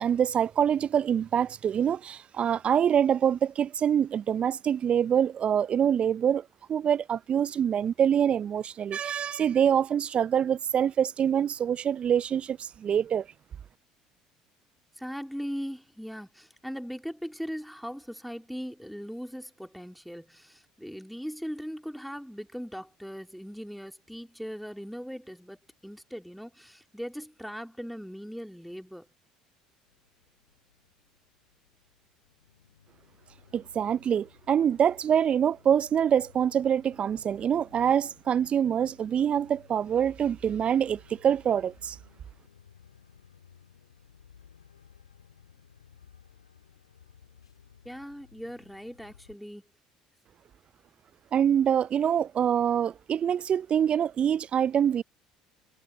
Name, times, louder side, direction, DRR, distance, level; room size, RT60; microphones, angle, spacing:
voice 1, 0.0-13.3 33.5-42.0 51.3-55.0, right 8 dB, 40° right, 0.5 m, -25 dB
voice 2, 15.0-29.1 47.8-49.6, equal, ahead, 3.1 m, -39 dB
sound 1, 29.9-49.4, left 7 dB, 85° left, 4.4 m, -58 dB
hypercardioid pair, 60°, 3 cm